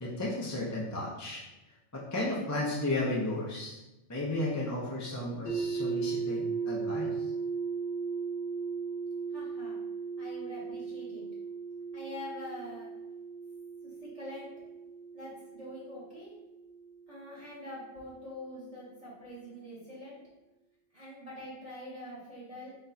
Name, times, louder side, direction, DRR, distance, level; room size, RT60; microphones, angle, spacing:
voice 1, 0.0-1.4 1.9-3.8 4.1-7.1, left 1 dB, 20° left, -5 dB, 0.5 m, -33 dB
sound 1, 5.5-17.4, right 5 dB, 70° left, 1.4 m, -37 dB
voice 2, 9.3-9.8 10.2-11.2 11.9-12.9 13.8-14.5 15.1-16.3 17.1-20.2 20.9-22.8, left 1 dB, 30° right, -9 dB, 1.2 m, -45 dB
4.4 x 4.2 x 2.7 m, 1.0 s
omnidirectional pair, 1.3 m